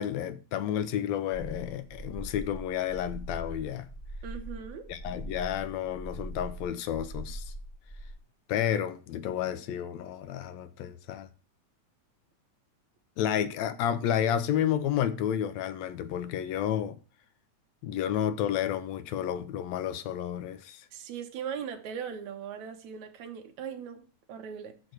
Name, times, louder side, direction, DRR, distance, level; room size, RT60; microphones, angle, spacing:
voice 1, 0.0-3.9 4.9-7.5 8.5-11.3 13.2-17.0 17.8-20.9, left 10 dB, 75° left, 1.7 m, -31 dB
sound 1, 1.3-8.1, right 1 dB, 15° left, 1.3 m, -42 dB
voice 2, 4.2-4.9 20.9-24.8, right 7 dB, 75° right, 2.5 m, -39 dB
6.5 x 6.2 x 6.1 m
omnidirectional pair, 3.4 m